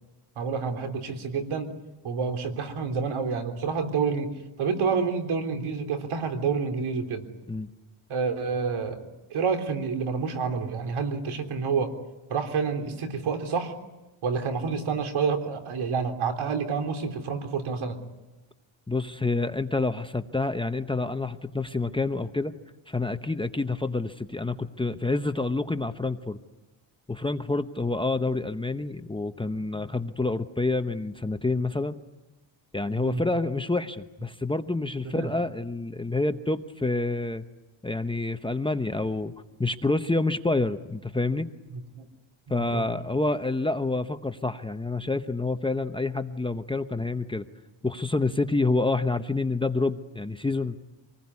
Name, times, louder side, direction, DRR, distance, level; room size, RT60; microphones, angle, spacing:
voice 1, 0.4-1.7 2.0-4.3 4.6-7.2 8.1-9.0 9.3-11.9 12.3-13.7 14.2-18.0 33.0-33.2 35.1-35.3 41.7-42.1 42.5-42.9, right 5 dB, 75° right, 5 dB, 3.5 m, -28 dB
voice 2, 18.9-22.5 22.9-26.4 27.1-32.0 32.7-37.4 37.8-39.3 39.6-41.5 42.5-47.4 47.8-50.8, left 2 dB, 10° left, 8 dB, 0.9 m, -28 dB
26.5 x 20.0 x 9.7 m, 1.1 s
cardioid pair, 115°, 49 cm